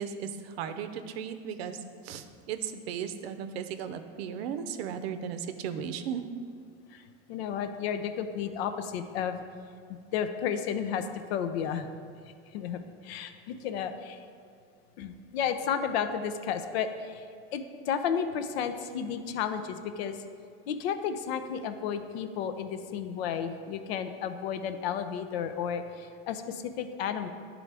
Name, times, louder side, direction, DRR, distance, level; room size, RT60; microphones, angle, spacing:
voice 1, 0.0-6.2, right 7 dB, 80° right, 9 dB, 0.6 m, -36 dB
voice 2, 7.3-9.4 9.9-11.9 12.5-14.2 15.0-17.3 17.5-20.2 20.7-27.3, left 8 dB, 85° left, 9 dB, 0.6 m, -32 dB
10.5 x 3.8 x 3.3 m, 2.3 s
supercardioid pair, 135°, 30 cm